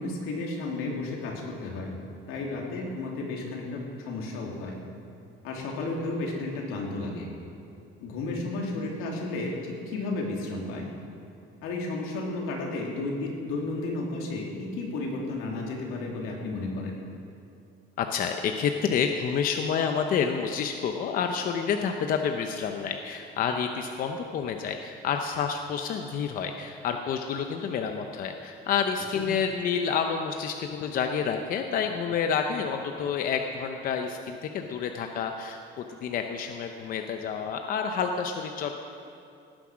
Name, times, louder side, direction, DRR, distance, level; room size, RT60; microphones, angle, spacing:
voice 1, 0.0-1.9 2.3-4.7 5.4-7.3 8.0-10.9 11.6-17.0 29.1-29.2, left 2 dB, 85° left, -1 dB, 3.0 m, -33 dB
voice 2, 18.0-38.7, left 6 dB, 40° left, 5 dB, 0.7 m, -29 dB
18.0 x 9.9 x 6.3 m, 2.5 s
cardioid pair, 180°, 21 cm